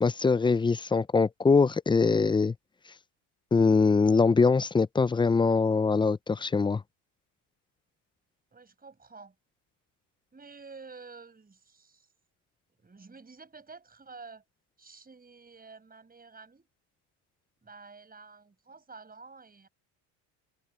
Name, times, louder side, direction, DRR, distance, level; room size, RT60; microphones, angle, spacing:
voice 1, 0.0-2.5 3.5-6.8, left 4 dB, 10° left, 0.4 m, -23 dB
voice 2, 8.5-9.3 10.3-12.1 12.8-14.4 14.8-16.7 17.6-19.7, right 4 dB, 20° right, 6.1 m, -50 dB
supercardioid pair, 90°, 45 cm